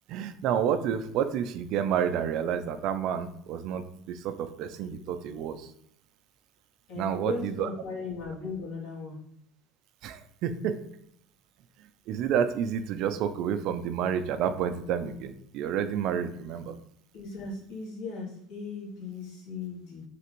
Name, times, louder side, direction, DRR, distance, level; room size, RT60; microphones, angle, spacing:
voice 1, 0.1-5.7 6.9-7.7 10.0-10.8 12.1-16.8, right 8 dB, 60° right, 9 dB, 0.3 m, -30 dB
voice 2, 6.9-9.2 17.1-20.0, left 4 dB, 65° left, -4 dB, 1.3 m, -37 dB
3.3 x 2.5 x 3.0 m, 0.72 s
hypercardioid pair, 80°, 0 cm